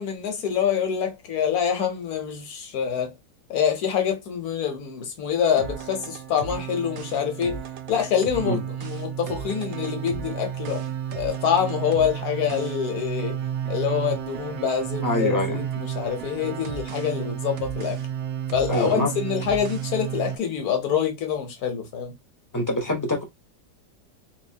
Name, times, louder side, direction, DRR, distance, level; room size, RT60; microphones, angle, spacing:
voice 1, 0.0-3.1 3.5-7.6 7.9-10.8 11.2-13.4 13.7-18.0 18.5-22.1, left 8 dB, 65° left, 1.4 m, -26 dB
sound 1, 5.6-20.4, right 9 dB, 75° right, 0.6 m, -32 dB
voice 2, 15.0-15.6 18.7-19.1 22.5-23.2, left 1 dB, 20° left, 0.5 m, -24 dB
3.9 x 2.6 x 2.7 m
omnidirectional pair, 1.8 m